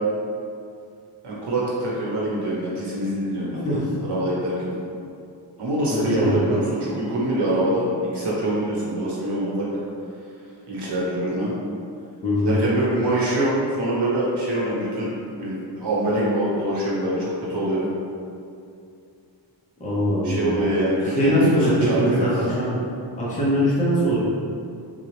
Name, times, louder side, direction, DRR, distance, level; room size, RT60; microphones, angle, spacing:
voice 1, 1.2-4.7 5.6-7.9 8.1-9.7 10.7-11.5 12.4-17.8 20.2-22.3, right 1 dB, 60° right, -6 dB, 1.1 m, -24 dB
voice 2, 5.9-6.4 12.2-12.6 19.8-20.4 21.2-22.7 23.2-24.2, equal, 15° left, -7 dB, 0.7 m, -21 dB
3.9 x 2.4 x 3.2 m, 2.5 s
wide cardioid pair, 135°, 45 cm